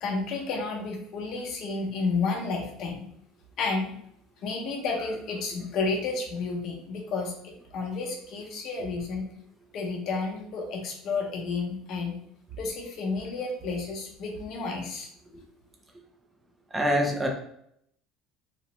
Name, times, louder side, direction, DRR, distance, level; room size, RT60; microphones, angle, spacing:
voice 1, 0.0-3.1 3.6-3.9 4.4-9.3 9.7-12.1 12.6-15.1, left 4 dB, 50° left, 1 dB, 0.6 m, -31 dB
voice 2, 16.7-17.3, equal, 10° right, 1 dB, 0.4 m, -24 dB
2.9 x 2.0 x 2.9 m, 0.72 s
cardioid pair, 150°, 0 cm